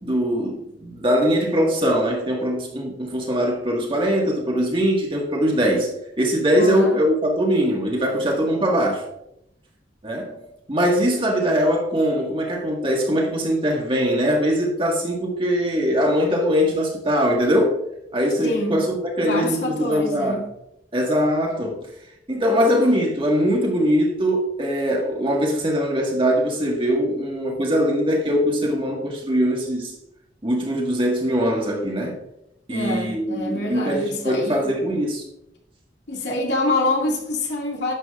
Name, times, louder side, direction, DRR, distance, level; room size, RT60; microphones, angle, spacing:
voice 1, 0.0-5.9 6.2-9.1 10.0-10.4 10.7-17.8 18.1-20.4 20.9-21.8 22.3-29.9 30.4-32.2 32.7-35.3, equal, 30° right, 1.8 m, -21 dB
voice 2, 6.6-7.0 18.4-18.9 19.2-20.5 32.7-34.7 36.1-37.9, left 2 dB, 70° left, 2.3 m, -26 dB
11.5 x 7.6 x 2.5 m
head